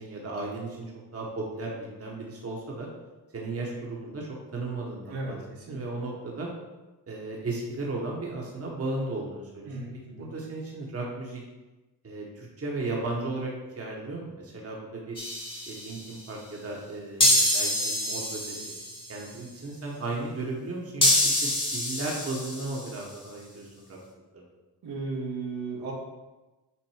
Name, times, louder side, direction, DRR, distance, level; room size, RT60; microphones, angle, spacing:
voice 1, 0.0-2.9 3.3-5.4 5.7-6.5 7.1-9.8 10.1-11.4 12.0-15.2 15.7-18.7 19.1-24.0 24.3-24.5, right 2 dB, 35° right, -2 dB, 1.4 m, -35 dB
voice 2, 5.1-5.8 9.7-10.3 24.8-25.9, right 3 dB, 75° right, -4 dB, 1.9 m, -35 dB
sound 1, 15.2-16.1 17.2-19.1 21.0-22.9, left 1 dB, 10° left, 1.4 m, -26 dB
7.4 x 2.6 x 4.9 m, 1.1 s
supercardioid pair, 65°, 41 cm